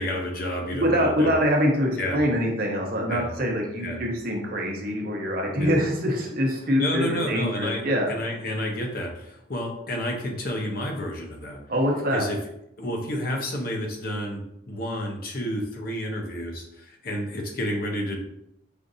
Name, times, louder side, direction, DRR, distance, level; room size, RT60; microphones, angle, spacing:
voice 1, 0.0-1.3 2.0-2.2 3.1-3.3 3.8-4.0 5.6-5.7 6.8-11.6 12.1-12.4 12.8-18.2, equal, 50° left, 1 dB, 0.7 m, -30 dB
voice 2, 0.7-8.1 11.7-12.2, equal, 50° right, 1 dB, 0.7 m, -24 dB
5.0 x 2.5 x 2.6 m, 0.79 s
head